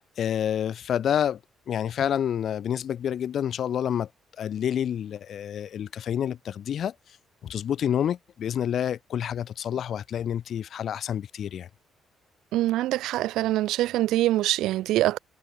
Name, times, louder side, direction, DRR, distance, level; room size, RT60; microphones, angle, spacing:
voice 1, 0.0-1.4 1.7-4.1 4.4-6.9 7.4-11.7, left 9 dB, 65° left, 1.8 m, -28 dB
voice 2, 12.5-15.2, right 15 dB, 90° right, 0.5 m, -24 dB
cardioid pair, 90°, 0 cm